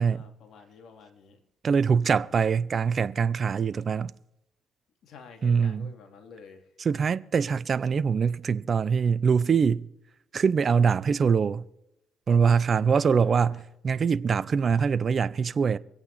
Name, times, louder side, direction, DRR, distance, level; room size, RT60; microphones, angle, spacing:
voice 1, 0.0-1.4 5.0-6.7 12.9-13.6, left 5 dB, 70° left, 2.6 m, -50 dB
voice 2, 1.6-4.1 5.4-5.9 6.8-9.9 10.3-11.6 12.3-15.8, right 6 dB, 45° right, 0.5 m, -23 dB
24.0 x 8.8 x 4.1 m
cardioid pair, 90°, 0 cm